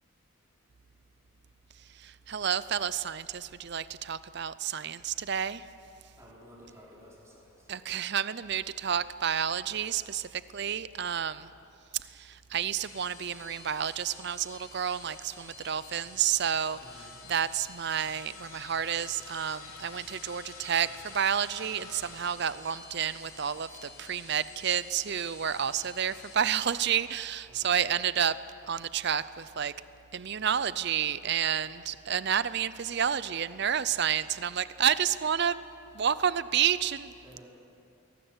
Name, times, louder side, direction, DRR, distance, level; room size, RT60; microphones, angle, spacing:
voice 1, 1.9-5.7 7.7-11.5 12.0-28.4 28.7-29.7 30.1-35.6 35.9-37.1, right 8 dB, 50° right, 16 dB, 0.5 m, -30 dB
voice 2, 6.2-7.9 16.8-17.1 27.5-27.8 37.2-37.5, equal, 15° right, -5 dB, 5.1 m, -53 dB
sound 1, 12.6-26.3, left 4 dB, 85° left, 4.0 m, -49 dB
22.0 x 19.0 x 8.1 m, 2.6 s
head